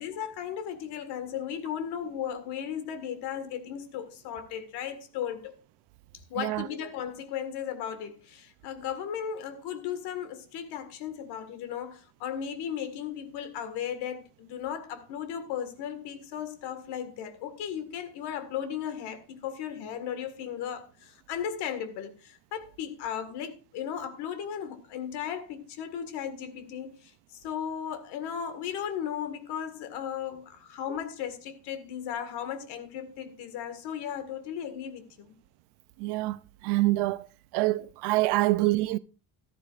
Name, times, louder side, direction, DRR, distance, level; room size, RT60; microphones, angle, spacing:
voice 1, 0.0-5.5 6.3-35.4, left 9 dB, 80° left, 1.9 m, -36 dB
voice 2, 36.0-37.3 37.5-39.0, right 19 dB, 85° right, 0.7 m, -26 dB
14.0 x 13.5 x 2.5 m
cardioid pair, 170°, 39 cm